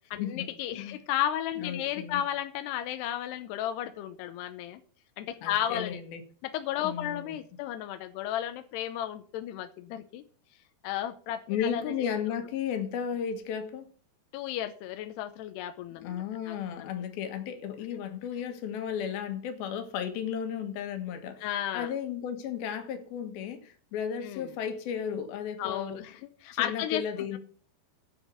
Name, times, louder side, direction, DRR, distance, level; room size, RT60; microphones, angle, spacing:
voice 1, 0.1-4.8 5.2-6.0 6.4-10.2 10.8-12.1 14.3-16.9 21.4-21.9 24.2-24.5 25.6-27.0, left 11 dB, 90° left, 2.9 m, -34 dB
voice 2, 1.6-2.2 5.4-6.2 6.8-7.3 11.5-13.9 16.0-21.5 21.7-26.0 26.5-27.4, left 8 dB, 70° left, 3.2 m, -34 dB
10.5 x 5.5 x 8.4 m
omnidirectional pair, 4.8 m